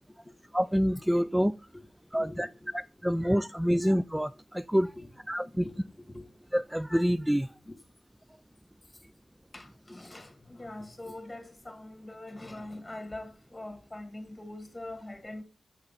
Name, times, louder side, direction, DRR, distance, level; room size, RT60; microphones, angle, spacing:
voice 1, 0.5-1.5 2.1-2.5 2.7-4.9 5.3-5.7 6.5-7.5, equal, 5° right, 0.3 m, -27 dB
voice 2, 1.7-2.8 3.8-3.9 5.0-5.1 5.4-6.3 7.7-7.8 9.5-15.4, left 1 dB, 20° left, 1.9 m, -43 dB
8.0 x 5.6 x 4.0 m
cardioid pair, 75°, 0 cm